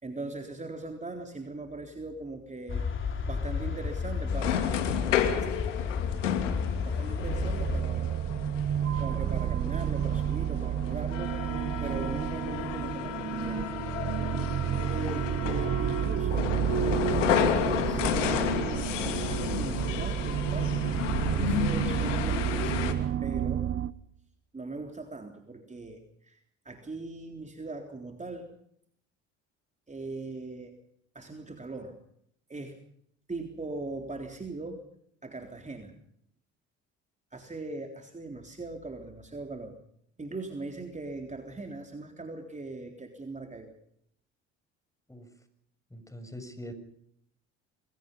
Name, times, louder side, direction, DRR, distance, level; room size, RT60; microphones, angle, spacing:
voice 1, 0.0-2.9 3.3-4.9 6.9-8.3 9.0-11.4 11.8-13.6 14.9-16.5 17.9-20.8 21.2-23.7 24.5-26.4 26.7-28.5 29.9-30.8 31.1-32.0 32.5-32.8 33.3-34.9 35.2-35.9 37.3-39.7 40.2-43.7, right 3 dB, 20° right, 4 dB, 3.8 m, -40 dB
sound 1, 2.7-7.8, left 5 dB, 35° left, 3.3 m, -32 dB
sound 2, 4.3-22.9, left 9 dB, 90° left, 2.9 m, -32 dB
sound 3, 7.2-23.9, right 9 dB, 40° right, 1.0 m, -30 dB
voice 2, 45.9-46.7, equal, 10° left, 10 dB, 6.8 m, -43 dB
28.0 x 22.0 x 5.4 m, 0.68 s
hypercardioid pair, 65°, 36 cm